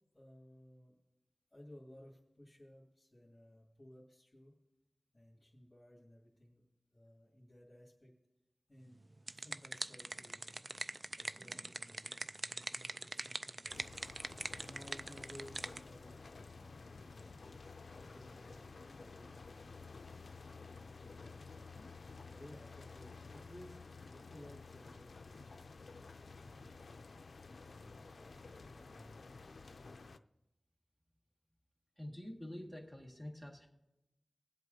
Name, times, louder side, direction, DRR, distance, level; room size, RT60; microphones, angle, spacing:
voice 1, 0.1-1.0 1.5-4.6 5.1-6.6 6.9-8.1 8.7-9.0 9.3-10.6 11.2-13.8 14.6-19.7 20.4-21.7 22.3-25.6 25.9-27.0 27.6-29.3 29.7-29.9, left 1 dB, 25° left, -5 dB, 2.2 m, -58 dB
sound 1, 8.9-15.8, right 2 dB, 45° right, 0.4 m, -43 dB
sound 2, 13.7-30.2, left 4 dB, 80° left, 0.4 m, -52 dB
voice 2, 32.0-33.7, left 1 dB, 10° right, 1 dB, 1.8 m, -47 dB
21.0 x 8.0 x 2.7 m, 0.95 s
wide cardioid pair, 65°, 0 cm